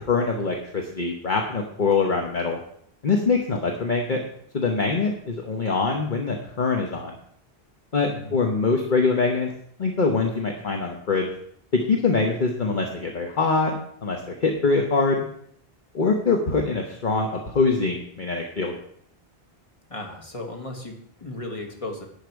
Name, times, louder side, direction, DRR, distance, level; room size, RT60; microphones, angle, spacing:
voice 1, 0.1-2.6 3.0-4.2 4.5-7.1 7.9-9.5 9.8-11.3 11.7-15.2 15.9-18.7, left 4 dB, 50° left, 2 dB, 1.3 m, -23 dB
voice 2, 19.9-22.1, left 2 dB, 30° left, 2 dB, 1.9 m, -35 dB
11.5 x 8.9 x 4.7 m, 0.66 s
omnidirectional pair, 1.1 m